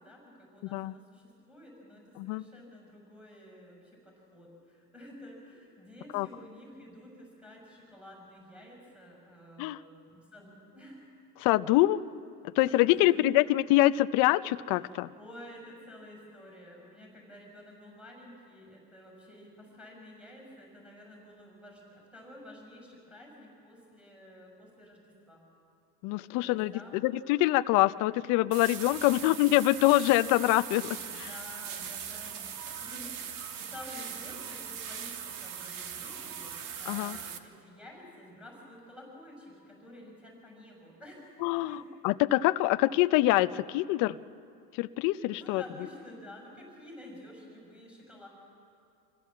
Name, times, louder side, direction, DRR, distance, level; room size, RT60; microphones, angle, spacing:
voice 1, 0.0-11.1 12.7-13.4 14.8-25.4 26.4-27.1 31.1-41.9 45.3-48.3, left 1 dB, ahead, -1 dB, 5.8 m, -50 dB
voice 2, 11.4-12.0 12.6-15.1 26.0-26.7 27.0-31.3 36.9-37.2 41.4-44.2 44.8-45.6, left 17 dB, 40° left, 12 dB, 0.6 m, -25 dB
sound 1, 28.5-37.4, right 8 dB, 45° right, 1.4 m, -40 dB
26.0 x 15.5 x 7.4 m, 2.4 s
supercardioid pair, 130°, 48 cm